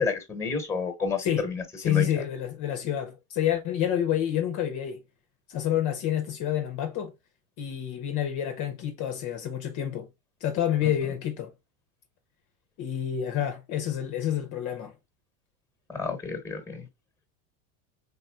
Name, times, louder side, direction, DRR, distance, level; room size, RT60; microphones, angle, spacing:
voice 1, 0.0-2.1 10.8-10.9 15.9-16.9, left 5 dB, 5° left, 1.2 m, -30 dB
voice 2, 1.8-5.0 5.5-7.1 7.6-10.1 10.4-11.5 12.8-14.9, left 10 dB, 45° left, 0.8 m, -28 dB
4.1 x 3.7 x 2.3 m
supercardioid pair, 115°, 44 cm